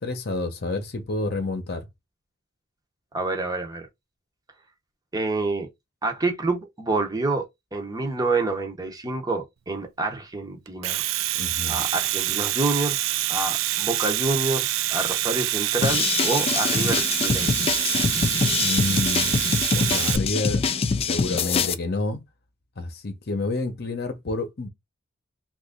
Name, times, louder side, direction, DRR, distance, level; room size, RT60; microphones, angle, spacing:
voice 1, 0.0-1.9 11.4-11.8 18.6-19.4 19.7-20.6 21.0-22.2 22.8-24.7, left 2 dB, 50° left, 0.8 m, -29 dB
voice 2, 3.1-3.9 5.1-5.7 6.0-11.0 11.7-17.6 17.9-18.1, right 3 dB, 20° right, 0.7 m, -28 dB
Domestic sounds home sounds, 10.7-20.2, right 14 dB, 70° right, 0.3 m, -26 dB
sound 1, 15.8-21.7, left 5 dB, 30° left, 0.3 m, -24 dB
3.0 x 2.4 x 3.6 m
head